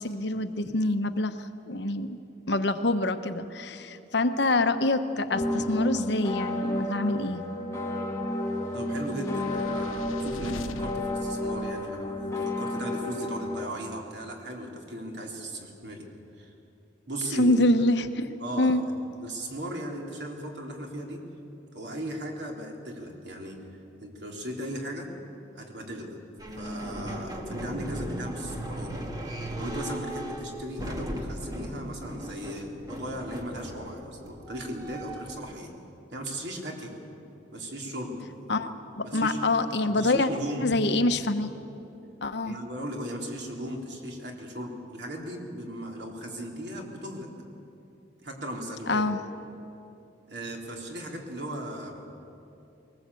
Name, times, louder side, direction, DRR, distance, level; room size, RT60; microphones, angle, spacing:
voice 1, 0.0-2.2 2.5-7.4 17.4-18.3 18.6-18.8 38.5-40.3 40.6-41.5 42.2-42.6 48.9-49.2, left 2 dB, 60° left, 9 dB, 1.0 m, -26 dB
sound 1, 5.3-13.7, left 1 dB, 15° left, 2.0 m, -31 dB
voice 2, 8.7-16.1 16.4-16.5 17.1-17.6 18.4-18.8 19.2-21.2 21.7-23.6 24.0-25.1 25.5-26.2 26.6-28.9 29.6-35.7 36.1-36.9 37.5-38.2 39.0-39.4 39.8-40.7 42.4-47.3 48.2-49.1 50.3-52.1, right 1 dB, 60° right, 0 dB, 3.4 m, -37 dB
sound 2, 9.0-12.4, left 3 dB, 90° left, 0.7 m, -43 dB
sound 3, 26.4-35.5, equal, 20° right, 1.8 m, -37 dB
21.0 x 19.5 x 8.4 m, 2.8 s
head